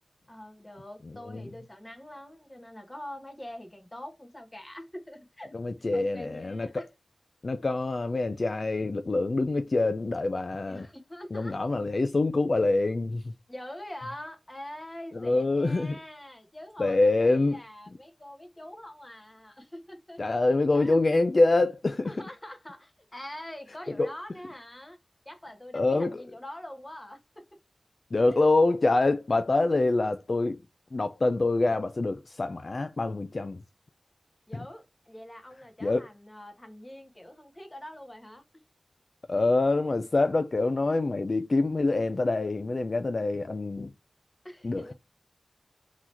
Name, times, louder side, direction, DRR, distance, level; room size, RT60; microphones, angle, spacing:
voice 1, 0.3-5.6 5.9-6.9 10.7-11.6 13.5-20.4 20.7-21.0 22.0-25.0 25.2-27.6 28.3-28.4 34.5-38.4 44.4-44.9, left 1 dB, 15° left, 1.4 m, -44 dB
voice 2, 5.5-6.9 7.4-10.9 11.3-13.3 15.1-16.0 16.8-17.6 20.2-22.1 24.0-24.1 25.7-26.2 28.1-30.6 30.9-33.6 34.5-34.7 35.8-36.1 39.3-43.9 44.6-44.9, left 2 dB, 50° left, 0.4 m, -25 dB
3.9 x 3.1 x 4.1 m
wide cardioid pair, 80°, 0 cm